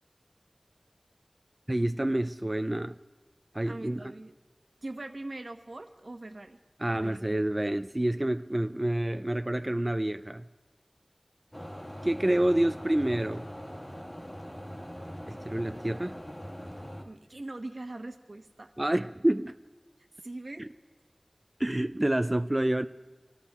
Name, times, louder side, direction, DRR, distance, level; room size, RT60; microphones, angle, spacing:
voice 1, 1.7-3.0 3.5-4.1 6.8-10.5 12.0-13.5 15.3-16.2 18.8-19.6 20.6-20.7 21.6-22.9, right 1 dB, 30° right, 0.4 m, -28 dB
voice 2, 3.6-4.3 4.8-6.6 6.9-7.4 17.0-18.7 20.2-20.7, right 2 dB, 80° right, 1.0 m, -41 dB
sound 1, 11.5-17.0, equal, 40° left, 1.6 m, -42 dB
26.5 x 18.5 x 2.4 m
wide cardioid pair, 45°, 0 cm